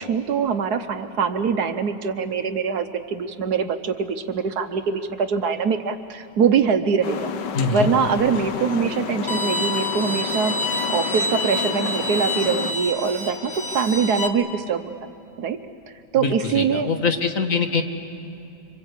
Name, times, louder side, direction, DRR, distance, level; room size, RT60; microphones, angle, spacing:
voice 1, 0.0-7.3 7.7-15.1 15.4-15.6 16.1-16.9, right 6 dB, 65° right, 10 dB, 1.3 m, -23 dB
sound 1, 7.0-12.7, left 6 dB, 75° left, 1.6 m, -30 dB
voice 2, 7.5-7.9 16.1-17.8, left 4 dB, 45° left, 5 dB, 1.9 m, -23 dB
Bowed string instrument, 9.3-14.3, left 2 dB, 15° left, 1.4 m, -27 dB
27.0 x 26.5 x 8.2 m, 2.6 s
omnidirectional pair, 2.0 m